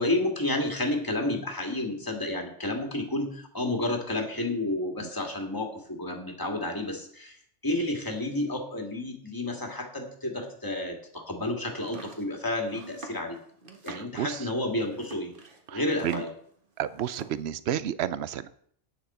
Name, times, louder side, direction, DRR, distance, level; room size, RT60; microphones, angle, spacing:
voice 1, 0.0-7.4 7.6-13.4 13.8-15.3 15.7-16.3, left 1 dB, 15° left, 2 dB, 2.0 m, -30 dB
Domestic sounds home sounds, 11.7-16.5 16.8-17.4, right 2 dB, 50° right, 1.7 m, -46 dB
voice 2, 13.9-14.4 15.7-16.2 16.8-18.5, right 10 dB, 65° right, 15 dB, 0.9 m, -31 dB
13.0 x 9.4 x 4.4 m, 0.63 s
omnidirectional pair, 1.2 m